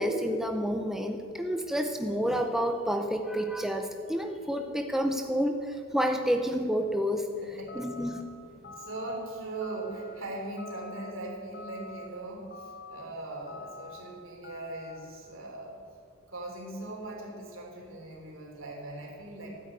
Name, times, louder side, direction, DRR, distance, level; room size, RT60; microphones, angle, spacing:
voice 1, 0.0-7.3 7.8-8.2, equal, ahead, 5 dB, 0.6 m, -29 dB
voice 2, 7.4-8.1 8.5-15.7 16.3-19.5, right 2 dB, 70° right, 0 dB, 3.5 m, -40 dB
sound 1, 7.7-8.2 8.6-9.2 9.6-10.1 10.6-11.1 11.5-12.1 12.5-13.0 13.5-14.0 14.4-15.0, left 3 dB, 50° left, 1.2 m, -46 dB
13.5 x 9.1 x 9.1 m, 2.5 s
head